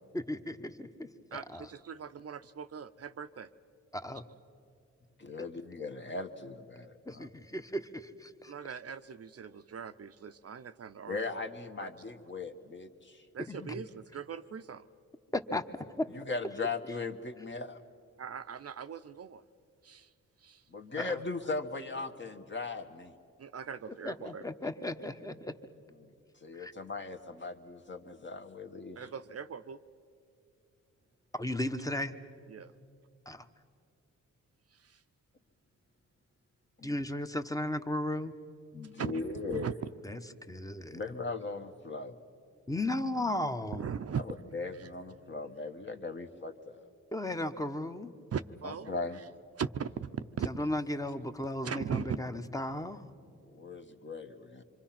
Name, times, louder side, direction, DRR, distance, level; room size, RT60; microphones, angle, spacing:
voice 1, 0.1-1.7 3.9-4.2 7.1-8.5 13.5-13.8 15.3-15.6 16.0-16.1 21.0-21.2 24.0-25.5 26.5-26.7 31.3-32.1 33.3-33.5 36.8-38.3 40.0-40.2 40.5-41.0 42.7-43.8 47.1-48.1 50.4-53.0, left 1 dB, 10° left, 9 dB, 1.1 m, -35 dB
voice 2, 1.3-3.5 8.5-11.2 11.8-11.9 13.3-14.8 18.2-19.4 19.8-20.1 20.4-20.6 23.4-24.5 29.0-29.8 32.5-32.7 34.7-35.0 39.0-39.7 43.7-44.2 44.7-44.9 48.3-49.2 49.6-50.1 50.4-50.5 51.6-52.2, right 7 dB, 50° right, 10 dB, 0.6 m, -39 dB
voice 3, 5.2-7.3 11.1-13.3 16.1-17.8 20.7-23.1 26.0-26.1 26.4-29.0 36.8-37.0 38.7-39.7 40.9-42.2 44.1-46.8 48.6-49.2 53.5-54.6, left 3 dB, 35° left, 5 dB, 1.5 m, -38 dB
26.0 x 24.5 x 5.9 m, 2.4 s
cardioid pair, 70°, 31 cm